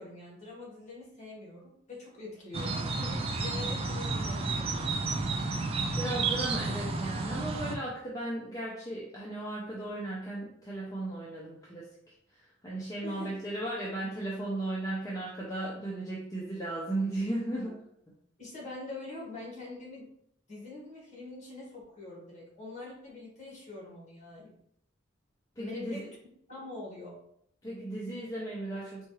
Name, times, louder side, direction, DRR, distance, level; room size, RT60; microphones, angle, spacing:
voice 1, 0.0-4.9 13.0-13.3 18.4-20.1 20.5-24.5 25.6-26.1 26.5-27.2, left 2 dB, 40° left, -3 dB, 1.3 m, -44 dB
sound 1, 2.5-7.7, right 3 dB, 30° right, 0.4 m, -31 dB
voice 2, 6.0-11.9 12.6-17.8 25.6-26.0 27.6-29.0, right 1 dB, 20° left, -5 dB, 0.6 m, -35 dB
4.1 x 2.3 x 3.1 m, 0.73 s
head